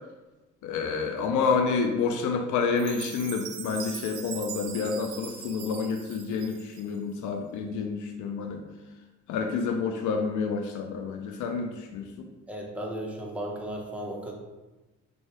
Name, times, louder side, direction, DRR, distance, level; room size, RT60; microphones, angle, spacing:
voice 1, 0.6-8.7 9.3-12.1, left 5 dB, 80° left, 4 dB, 0.5 m, -29 dB
Chime, 2.8-7.0, right 8 dB, 85° right, 0.5 m, -41 dB
voice 2, 12.5-14.3, right 1 dB, 5° right, -1 dB, 0.8 m, -35 dB
4.4 x 2.8 x 3.2 m, 1.1 s
cardioid pair, 90°, 30 cm